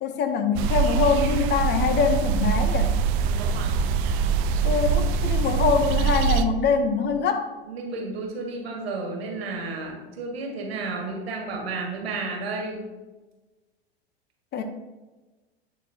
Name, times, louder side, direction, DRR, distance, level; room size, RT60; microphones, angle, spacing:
voice 1, 0.0-3.0 4.6-7.5 14.5-14.6, left 6 dB, 35° left, 7 dB, 0.7 m, -24 dB
sound 1, 0.6-6.4, right 6 dB, 45° right, 0.5 m, -23 dB
voice 2, 3.2-3.8 6.1-6.4 7.6-12.9, right 3 dB, 75° right, 1 dB, 1.8 m, -32 dB
9.7 x 4.2 x 2.8 m, 1.2 s
hypercardioid pair, 95°, 31 cm